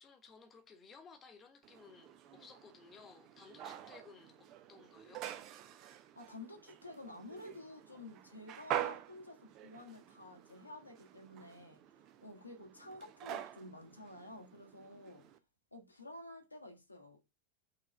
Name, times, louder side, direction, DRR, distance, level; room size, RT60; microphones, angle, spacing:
voice 1, 0.0-5.3, left 5 dB, 25° left, 1.2 m, -58 dB
sound 1, 1.6-15.4, right 11 dB, 35° right, 0.7 m, -46 dB
voice 2, 6.1-11.8 12.2-15.3 15.7-17.2, left 2 dB, 85° left, 1.6 m, -51 dB
5.7 x 3.7 x 5.3 m
figure-of-eight pair, 90°, 0 cm